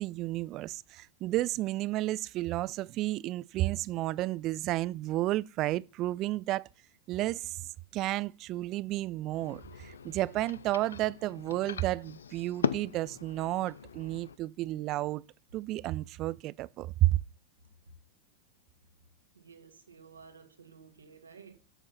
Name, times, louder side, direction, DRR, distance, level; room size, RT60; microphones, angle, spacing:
voice 1, 0.0-6.7 7.1-7.6 7.9-15.2 15.5-17.2, right 16 dB, 35° right, 0.4 m, -32 dB
sound 1, 9.3-14.4, left 7 dB, 70° left, 0.5 m, -39 dB
voice 2, 19.4-21.6, right 6 dB, 75° right, 1.9 m, -53 dB
11.0 x 7.0 x 4.2 m
figure-of-eight pair, 90°, 0 cm